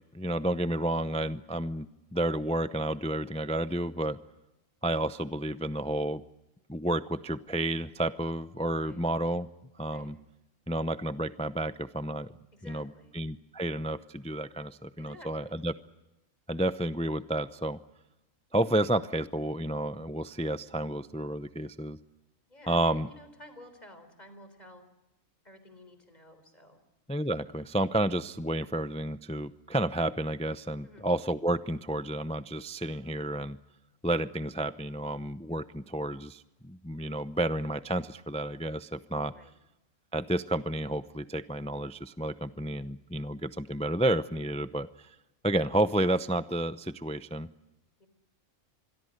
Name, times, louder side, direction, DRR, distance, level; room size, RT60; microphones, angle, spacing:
voice 1, 0.1-4.2 4.8-6.2 6.7-9.5 9.8-10.2 10.7-12.3 12.7-12.9 13.1-15.7 16.5-17.8 18.5-22.0 22.7-23.1 27.1-33.6 34.0-39.3 40.1-45.1 45.4-47.5, right 1 dB, 10° left, 13 dB, 0.3 m, -31 dB
voice 2, 8.7-9.0 9.9-10.1 12.5-13.2 15.0-15.6 22.5-24.8 25.4-26.8 30.8-31.0 39.3-39.5 48.0-48.1, left 1 dB, 30° left, 9 dB, 4.2 m, -52 dB
26.5 x 22.0 x 6.5 m, 0.99 s
omnidirectional pair, 1.4 m